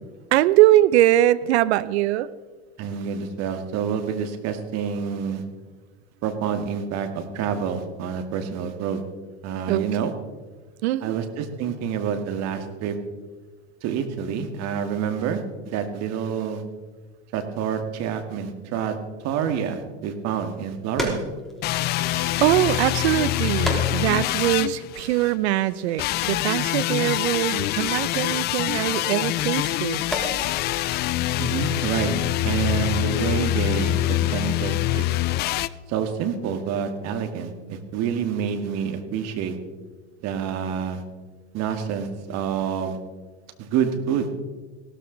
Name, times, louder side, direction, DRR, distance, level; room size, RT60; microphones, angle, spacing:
voice 1, 0.3-2.3 9.7-10.1 10.8-11.2 22.1-30.0, right 14 dB, 65° right, 17 dB, 0.8 m, -22 dB
voice 2, 2.8-5.4 6.2-9.0 9.4-10.1 11.0-13.0 13.8-16.6 17.3-18.9 19.2-21.2 31.4-32.1 32.4-35.1 35.9-39.6 40.2-41.0 41.5-43.0 43.6-44.3, right 7 dB, 45° right, 7 dB, 2.0 m, -27 dB
sound 1, 20.4-31.8, equal, ahead, 3.2 m, -37 dB
sound 2, 21.6-25.4 26.0-35.7, left 15 dB, 30° left, 0.4 m, -25 dB
16.5 x 13.5 x 4.0 m, 1.3 s
hypercardioid pair, 105°, 35 cm